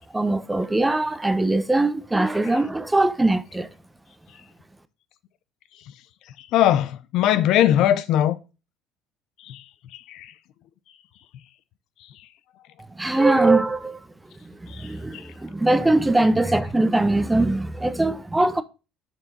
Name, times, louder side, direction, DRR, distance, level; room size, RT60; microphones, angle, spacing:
voice 1, 0.1-3.7 13.0-14.0 14.4-18.6, right 2 dB, 10° right, 0.8 m, -21 dB
voice 2, 6.5-8.4 9.5-9.6 10.1-10.3, left 11 dB, 65° left, 0.5 m, -19 dB
6.9 x 4.6 x 5.0 m
hypercardioid pair, 75°, 0 cm